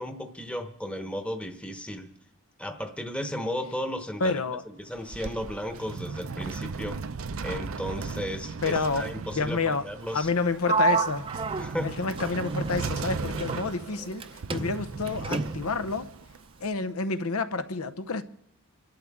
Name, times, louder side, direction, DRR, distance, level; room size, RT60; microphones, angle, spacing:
voice 1, 0.0-2.1 2.6-7.0 7.4-10.3 11.0-11.1 11.6-11.9, equal, 5° left, 1.0 m, -35 dB
voice 2, 4.2-4.6 8.6-9.1 9.4-9.8 10.1-11.3 11.8-16.1 16.6-18.2, left 4 dB, 85° left, 0.8 m, -29 dB
sound 1, 4.8-16.7, right 4 dB, 70° right, 0.6 m, -37 dB
Sliding door, 10.6-14.2 14.5-15.8, right 4 dB, 25° right, 0.5 m, -30 dB
28.0 x 12.5 x 3.6 m
head